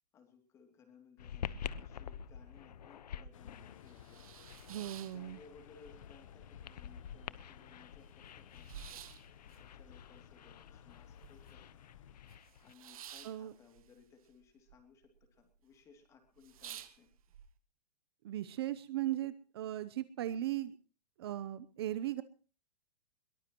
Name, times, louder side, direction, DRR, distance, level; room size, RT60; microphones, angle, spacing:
voice 1, 0.1-9.0 9.4-11.9 12.6-17.1, left 5 dB, 15° left, 5 dB, 2.7 m, -62 dB
sound 1, 1.2-12.7, left 8 dB, 80° left, 1.0 m, -48 dB
sound 2, 3.3-12.4, left 9 dB, 55° left, 1.0 m, -56 dB
sound 3, 3.7-5.9 6.2-6.9 7.3-7.4 7.5-11.7 12.0-14.8 15.0-15.6 16.0-16.1 16.4-17.4, right 10 dB, 60° right, 1.7 m, -52 dB
voice 2, 4.7-5.4 13.2-13.5 18.2-20.7 21.2-22.2, right 13 dB, 40° right, 15 dB, 0.7 m, -37 dB
22.5 x 19.0 x 3.0 m, 0.37 s
hypercardioid pair, 175°, 20 cm